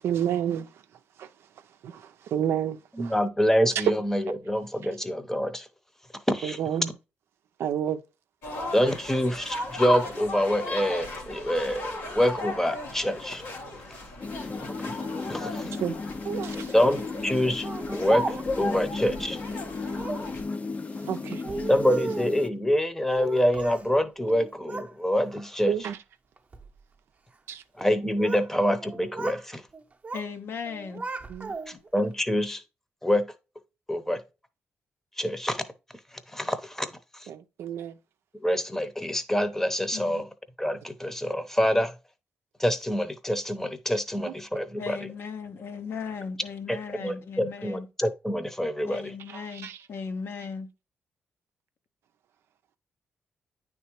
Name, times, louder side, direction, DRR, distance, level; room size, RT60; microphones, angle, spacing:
voice 1, 0.0-0.7 1.2-1.3 1.8-2.0 2.3-3.1 6.4-6.9 7.6-8.0 15.8-16.0 16.2-16.7 21.1-21.4 25.7-26.0 27.5-27.6 31.3-31.5 37.3-37.9 44.2-44.3 49.6-49.8, right 9 dB, 85° right, 0.5 m, -29 dB
voice 2, 2.9-5.7 6.3-6.6 8.7-13.4 14.6-14.9 15.3-15.7 16.7-17.7 17.9-19.4 21.7-25.9 27.8-29.6 31.7-32.6 33.0-33.3 33.9-34.2 35.2-35.6 36.3-36.9 37.1-37.3 38.4-40.2 40.6-41.9 42.6-45.0 46.7-49.1, equal, 10° left, 0.8 m, -26 dB
Roger de Flor during break time, 8.4-20.4, left 2 dB, 90° left, 1.4 m, -36 dB
sound 1, 14.2-22.5, left 4 dB, 35° left, 0.4 m, -35 dB
Speech, 17.6-18.7 19.9-20.3 21.3-22.4 23.1-23.9 24.2-24.9 25.3-25.7 26.4-26.7 27.8-28.5 28.8-29.4 29.7-30.3 30.6-31.9, right 3 dB, 30° right, 0.7 m, -35 dB
voice 3, 30.1-31.0 31.7-31.8 39.9-40.2 44.8-47.9 48.8-50.7, left 5 dB, 70° left, 0.8 m, -37 dB
9.2 x 3.6 x 3.0 m
cardioid pair, 75°, 4 cm